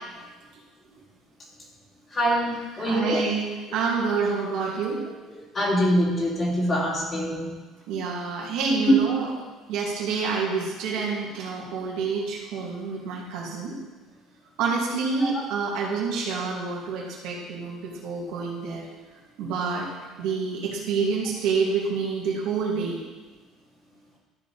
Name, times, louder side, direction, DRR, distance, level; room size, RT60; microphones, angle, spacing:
voice 1, 2.1-3.2 5.5-7.5 8.9-9.0 15.2-15.3, equal, 30° left, -5 dB, 2.9 m, -23 dB
voice 2, 2.8-5.0 7.9-9.3 9.7-13.8 14.6-18.9 19.4-19.9 20.2-23.0, right 5 dB, 80° right, -3 dB, 2.4 m, -28 dB
13.0 x 4.9 x 4.1 m, 1.3 s
cardioid pair, 125°, 0 cm